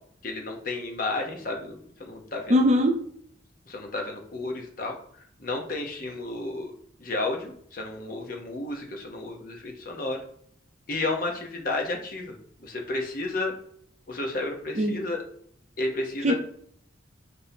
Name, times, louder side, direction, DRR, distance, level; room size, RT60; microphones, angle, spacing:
voice 1, 0.2-2.7 3.7-5.0 5.4-6.7 7.0-10.2 10.9-12.4 12.6-13.5 14.1-15.2 15.8-16.3, left 2 dB, 45° left, 0.8 m, -32 dB
voice 2, 2.5-3.0 14.7-14.9 16.2-16.3, equal, 35° right, 0.5 m, -20 dB
6.0 x 2.7 x 2.7 m
head